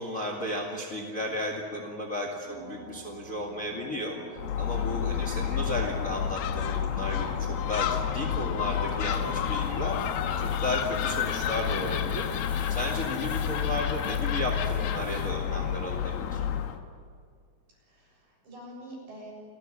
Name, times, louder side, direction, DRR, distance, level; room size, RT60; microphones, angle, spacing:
voice 1, 0.0-4.2 4.6-10.0 10.4-12.3 12.7-16.4, left 1 dB, 30° left, 1 dB, 1.9 m, -34 dB
sound 1, 2.4-11.0 16.3-16.4, right 1 dB, 85° right, 5.3 m, -46 dB
voice 2, 2.5-3.1 11.0-11.4 17.9-19.3, right 1 dB, 60° right, -2 dB, 8.7 m, -47 dB
Gull seagull, 4.4-16.8, left 9 dB, 80° left, 3.1 m, -30 dB
sound 2, 8.7-15.3, left 1 dB, 10° left, 6.1 m, -49 dB
28.5 x 13.0 x 9.9 m, 2.2 s
omnidirectional pair, 4.4 m